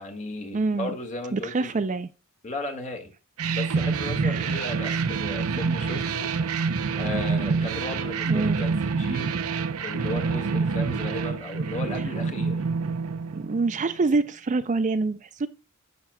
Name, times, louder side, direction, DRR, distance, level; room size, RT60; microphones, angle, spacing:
voice 1, 0.0-1.7 2.4-3.1 3.5-6.7 7.0-9.4 9.8-12.6, left 2 dB, 35° left, 1.7 m, -35 dB
voice 2, 0.5-0.9 1.3-2.1 4.2-4.7 8.3-8.6 11.9-12.0 13.3-15.5, right 3 dB, 35° right, 0.4 m, -26 dB
sound 1, 3.4-13.9, right 4 dB, 75° right, 0.7 m, -27 dB
10.5 x 7.6 x 2.2 m
head